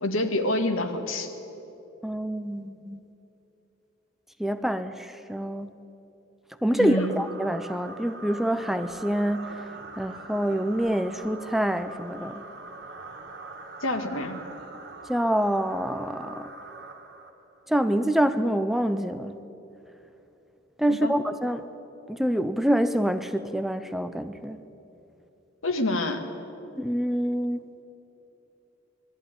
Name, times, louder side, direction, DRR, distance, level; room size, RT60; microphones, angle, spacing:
voice 1, 0.0-1.3 6.8-7.2 13.8-14.4 20.9-21.1 25.6-26.2, left 1 dB, 80° left, 5 dB, 1.9 m, -27 dB
voice 2, 2.0-3.0 4.4-5.8 6.6-9.6 10.0-12.4 15.1-16.5 17.7-19.4 20.8-21.7 22.1-24.6 26.8-27.6, equal, ahead, 10 dB, 0.5 m, -26 dB
sound 1, 6.9-17.7, right 3 dB, 50° right, 1.8 m, -43 dB
21.0 x 13.5 x 9.9 m, 3.0 s
head